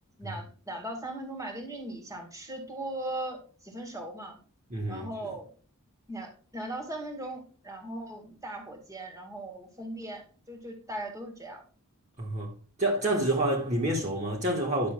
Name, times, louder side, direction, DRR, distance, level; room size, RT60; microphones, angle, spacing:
voice 1, 0.2-4.4 4.9-5.5 6.1-11.6, right 1 dB, 15° right, 1.9 m, -39 dB
voice 2, 4.7-5.1 12.2-12.5 12.8-14.9, right 1 dB, 30° right, 1.5 m, -28 dB
10.5 x 6.7 x 2.3 m
head